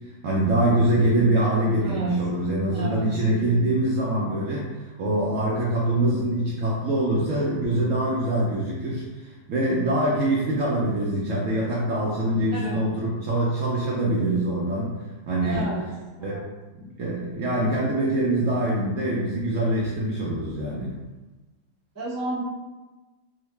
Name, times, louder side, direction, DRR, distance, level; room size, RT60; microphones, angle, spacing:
voice 1, 0.2-14.9 15.3-15.7 16.2-16.4 16.8-20.9, right 1 dB, 65° right, -5 dB, 0.8 m, -24 dB
voice 2, 1.8-2.1 2.7-3.1 12.5-12.8 15.4-15.8 16.2-16.4 21.9-22.4, right 1 dB, 20° right, -7 dB, 0.4 m, -31 dB
3.8 x 2.1 x 3.1 m, 1.2 s
omnidirectional pair, 1.8 m